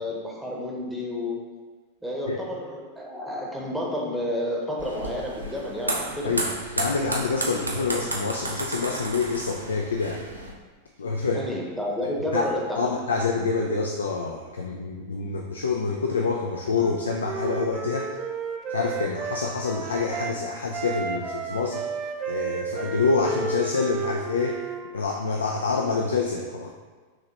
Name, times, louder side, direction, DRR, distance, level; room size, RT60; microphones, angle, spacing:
voice 1, 0.0-1.4 2.0-6.4 11.3-13.0, left 1 dB, ahead, -3 dB, 0.9 m, -30 dB
sound 1, 4.8-10.5, right 2 dB, 85° right, 0.5 m, -32 dB
voice 2, 6.8-10.2 11.0-11.4 12.3-12.5 12.8-18.1 18.7-21.8 22.3-24.6 24.9-26.7, left 4 dB, 70° left, 1 dB, 0.3 m, -27 dB
Wind instrument woodwind instrument, 16.7-20.3 20.7-24.8, right 5 dB, 30° right, 0.4 m, -32 dB
5.0 x 3.0 x 2.9 m, 1.4 s
figure-of-eight pair, 90°, 0 cm